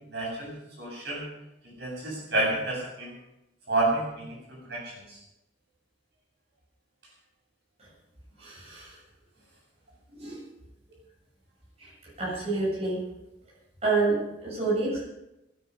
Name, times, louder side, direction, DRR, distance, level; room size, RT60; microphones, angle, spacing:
voice 1, 0.1-1.2 1.6-3.1 3.7-4.3 4.7-5.2, right 2 dB, 65° right, -3 dB, 8.0 m, -30 dB
voice 2, 8.4-9.0 10.2-10.4 11.8-11.9 12.2-13.0 13.8-15.0, right 3 dB, 35° right, -6 dB, 7.5 m, -28 dB
22.0 x 9.8 x 5.6 m, 0.93 s
head